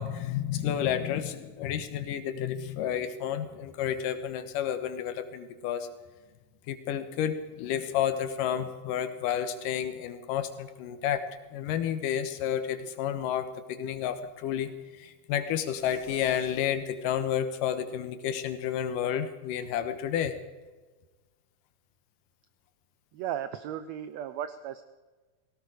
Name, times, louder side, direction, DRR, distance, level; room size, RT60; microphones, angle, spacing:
voice 1, 0.0-5.9 6.7-11.2 11.5-20.4, left 9 dB, 80° left, 10 dB, 2.8 m, -31 dB
voice 2, 23.1-24.8, right 10 dB, 80° right, 12 dB, 1.6 m, -35 dB
17.0 x 17.0 x 4.9 m, 1.3 s
omnidirectional pair, 3.8 m